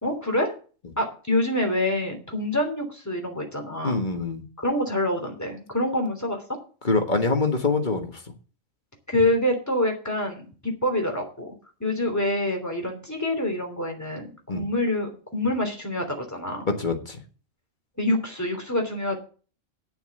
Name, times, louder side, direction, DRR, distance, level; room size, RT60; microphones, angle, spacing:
voice 1, 0.0-0.5 1.0-4.0 4.6-6.4 9.1-11.5 11.8-16.6 18.0-19.2, left 1 dB, 15° left, 2 dB, 3.0 m, -26 dB
voice 2, 3.8-4.4 6.8-8.1 14.5-14.7 16.7-17.2, left 3 dB, 40° left, 5 dB, 1.6 m, -24 dB
9.6 x 7.0 x 7.8 m, 0.39 s
omnidirectional pair, 1.3 m